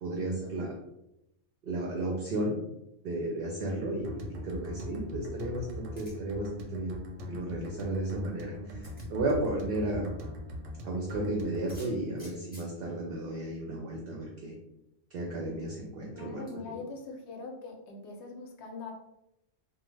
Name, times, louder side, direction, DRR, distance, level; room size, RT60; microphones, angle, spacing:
voice 1, 0.0-0.7 1.6-2.6 3.0-7.0 7.3-8.8 9.1-10.1 10.8-14.5 15.1-16.8, right 1 dB, 60° right, -1 dB, 0.6 m, -33 dB
sound 1, 4.0-11.8, left 1 dB, 85° right, 0.9 m, -41 dB
sound 2, 5.9-6.4 8.0-8.1 8.8-9.1 11.6-12.7 13.8-13.9 14.2-14.3 16.5-16.6, equal, 10° left, 0.8 m, -53 dB
voice 2, 16.1-18.9, left 4 dB, 70° left, 1 dB, 0.8 m, -42 dB
2.4 x 2.1 x 3.1 m, 0.86 s
omnidirectional pair, 1.3 m